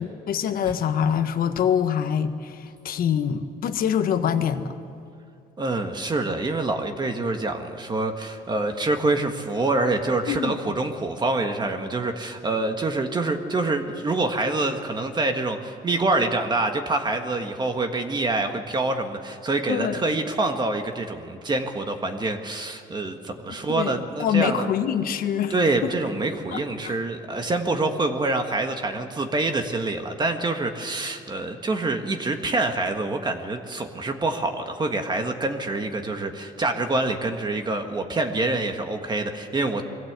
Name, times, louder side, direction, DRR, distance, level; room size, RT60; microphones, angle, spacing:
voice 1, 0.0-4.7 10.3-10.6 19.7-20.0 23.5-25.5 25.8-25.9 26.5-27.0, left 8 dB, 60° left, 9 dB, 1.3 m, -25 dB
voice 2, 5.6-24.7 25.5-39.8, right 2 dB, 25° right, 5 dB, 1.7 m, -26 dB
22.5 x 16.0 x 8.2 m, 2.4 s
cardioid pair, 110°, 17 cm